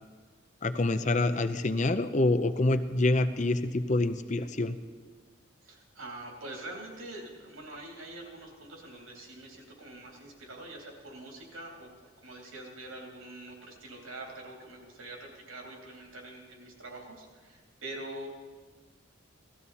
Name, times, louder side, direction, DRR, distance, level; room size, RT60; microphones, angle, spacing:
voice 1, 0.6-4.8, left 2 dB, 35° left, 11 dB, 0.6 m, -26 dB
voice 2, 5.6-18.3, right 2 dB, 90° right, 0 dB, 3.2 m, -45 dB
18.0 x 14.0 x 4.2 m, 1.5 s
head